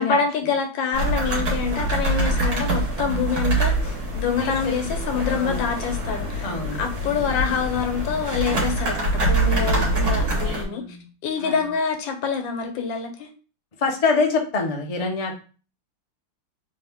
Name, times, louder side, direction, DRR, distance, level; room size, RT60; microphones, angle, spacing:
voice 1, 0.0-10.8 11.2-13.3, left 6 dB, 85° left, 4 dB, 1.5 m, -26 dB
sound 1, 0.9-10.6, right 1 dB, 55° right, 1.8 m, -24 dB
voice 2, 4.4-4.8 5.1-5.7 6.4-7.3 9.7-10.1 10.5-11.0 11.4-11.6 13.8-15.3, left 4 dB, 70° left, 1 dB, 0.3 m, -26 dB
3.7 x 2.8 x 3.4 m, 0.37 s
omnidirectional pair, 2.0 m